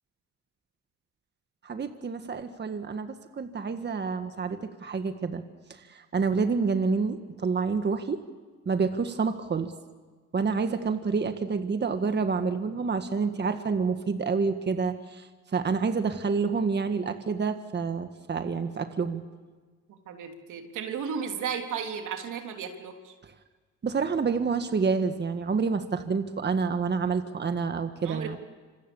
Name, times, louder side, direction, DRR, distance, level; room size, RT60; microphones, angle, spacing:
voice 1, 1.6-5.4 5.7-8.2 8.6-9.7 10.3-19.2 23.8-28.4, right 5 dB, 35° right, 7 dB, 1.6 m, -28 dB
voice 2, 20.1-23.1 28.0-28.4, right 7 dB, 80° right, 4 dB, 3.2 m, -34 dB
26.5 x 26.5 x 7.0 m, 1.4 s
cardioid pair, 90°, 30 cm